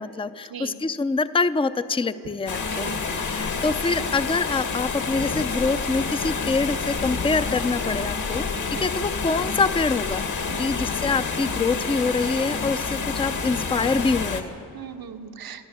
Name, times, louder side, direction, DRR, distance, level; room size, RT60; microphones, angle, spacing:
voice 1, 0.0-8.5 8.8-14.6, left 3 dB, 15° left, 13 dB, 0.5 m, -25 dB
sound 1, 2.5-14.4, left 4 dB, 55° left, 1.8 m, -28 dB
voice 2, 2.8-3.3 8.3-8.9 10.5-10.8 13.0-13.1 14.7-15.7, right 7 dB, 85° right, 7 dB, 1.3 m, -40 dB
28.5 x 13.0 x 8.1 m, 2.7 s
wide cardioid pair, 110°, 35 cm